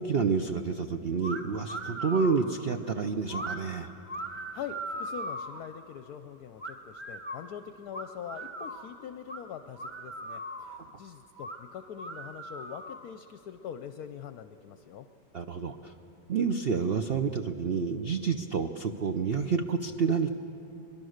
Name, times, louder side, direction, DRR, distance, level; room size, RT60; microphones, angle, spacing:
voice 1, 0.0-3.9 15.3-15.9 16.3-20.3, right 5 dB, 65° right, 7 dB, 0.5 m, -29 dB
sound 1, 1.2-1.4 1.7-2.4 3.3-3.6 4.1-5.6 6.6-7.4 7.9-8.9 9.3-9.4 9.8-10.8 11.4-11.6 12.0-13.1, right 1 dB, 15° right, 1.2 m, -38 dB
voice 2, 4.3-15.1, left 9 dB, 65° left, 10 dB, 1.0 m, -43 dB
24.0 x 21.5 x 6.5 m, 3.0 s
omnidirectional pair, 2.0 m